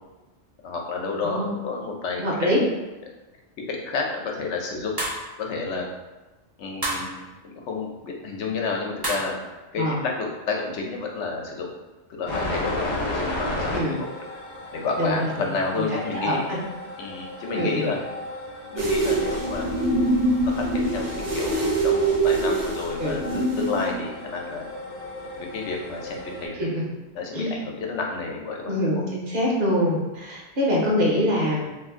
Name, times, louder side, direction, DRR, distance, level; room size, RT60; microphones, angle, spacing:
voice 1, 0.6-2.5 3.7-4.9 5.4-5.9 6.6-9.4 9.7-11.7 12.1-14.1 14.7-16.4 17.0-18.0 18.7-20.1 20.4-24.6 25.4-26.9 27.1-28.7, left 4 dB, 90° left, 0 dB, 0.9 m, -30 dB
voice 2, 2.2-2.6 9.8-10.0 13.7-14.0 15.0-15.5 16.2-16.6 17.5-17.9 23.0-23.2 26.5-26.8 27.3-27.5 28.7-31.7, equal, 50° right, -4 dB, 0.8 m, -24 dB
sound 1, 5.0-5.3 6.8-7.1 9.0-9.4, right 1 dB, 25° right, 0.6 m, -28 dB
sound 2, 12.3-26.5, left 1 dB, 45° left, 0.7 m, -34 dB
sound 3, 18.8-24.0, right 2 dB, 90° right, 1.1 m, -24 dB
2.6 x 2.5 x 3.6 m, 1.1 s
omnidirectional pair, 1.2 m